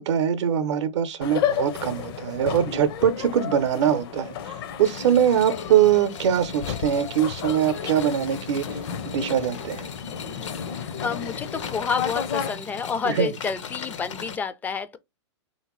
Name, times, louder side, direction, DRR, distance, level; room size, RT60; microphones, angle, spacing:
voice 1, 0.0-8.8 9.0-9.9 13.1-13.3, right 9 dB, 70° right, 0.7 m, -22 dB
sound 1, 1.2-12.5, left 8 dB, 55° left, 0.6 m, -32 dB
sound 2, 4.8-14.4, left 7 dB, 80° left, 0.8 m, -39 dB
voice 2, 10.6-15.0, left 5 dB, 10° left, 0.3 m, -29 dB
3.6 x 2.7 x 3.0 m
hypercardioid pair, 135°, 15 cm